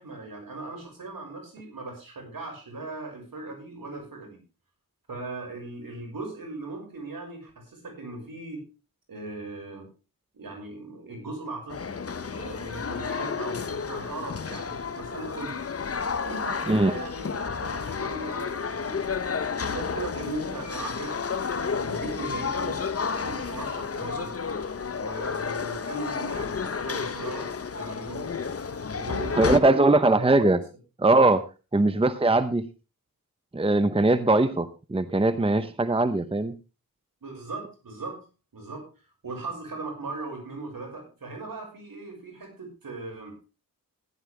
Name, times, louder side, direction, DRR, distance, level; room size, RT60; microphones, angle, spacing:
voice 1, 0.0-4.4 5.1-8.6 9.1-9.8 10.3-11.9 12.2-15.5 16.2-19.1 19.6-21.2 21.8-24.3 24.9-28.3 28.9-30.2 37.2-38.3 38.5-38.8 39.2-43.4, right 3 dB, 70° right, 2 dB, 6.1 m, -38 dB
sound 1, 11.7-29.6, left 5 dB, 40° left, 0.9 m, -31 dB
voice 2, 16.7-17.0 29.3-30.6 31.0-31.4 31.7-32.7 33.5-36.6, right 2 dB, 15° right, 12 dB, 0.8 m, -21 dB
15.0 x 11.0 x 3.4 m, 0.32 s
cardioid pair, 60°, 36 cm